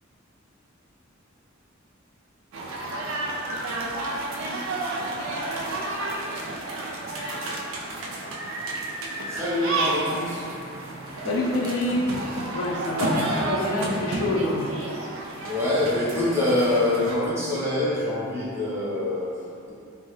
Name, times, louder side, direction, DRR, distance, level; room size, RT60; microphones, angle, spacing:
sound 1, 2.5-17.1, right 2 dB, 85° right, 0.3 m, -31 dB
voice 1, 9.3-10.5 11.1-11.2 15.5-19.7, left 1 dB, 15° right, -9 dB, 0.6 m, -25 dB
voice 2, 11.2-14.7, left 1 dB, 85° left, -1 dB, 0.4 m, -26 dB
2.2 x 2.0 x 3.1 m, 2.4 s
head